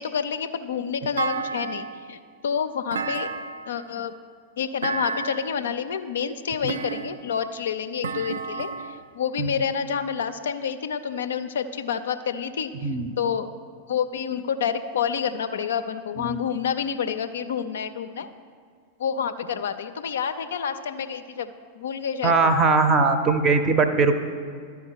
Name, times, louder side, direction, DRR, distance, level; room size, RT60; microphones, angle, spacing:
voice 1, 0.0-3.3 3.7-4.1 4.6-12.9 13.2-13.5 13.9-18.3 19.0-22.3, left 7 dB, 65° left, 10 dB, 0.3 m, -28 dB
Thump thud, 1.2-2.1 2.9-3.8 4.8-5.6 6.7-7.4 8.0-9.1, right 4 dB, 70° right, 0.4 m, -31 dB
voice 2, 12.8-13.1 16.2-16.4 22.2-24.1, right 4 dB, 25° right, 8 dB, 0.6 m, -20 dB
12.5 x 4.7 x 4.5 m, 2.1 s
figure-of-eight pair, 90°, 0 cm